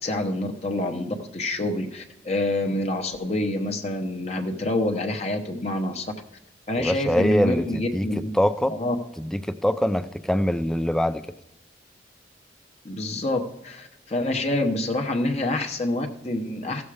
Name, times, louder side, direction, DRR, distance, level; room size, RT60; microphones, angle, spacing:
voice 1, 0.0-6.1 6.7-8.3 8.7-8.9 12.8-16.8, left 1 dB, 35° left, 4 dB, 0.9 m, -27 dB
voice 2, 6.8-8.8 9.2-11.3, equal, 5° left, 11 dB, 0.4 m, -24 dB
15.0 x 7.1 x 4.9 m, 0.90 s
head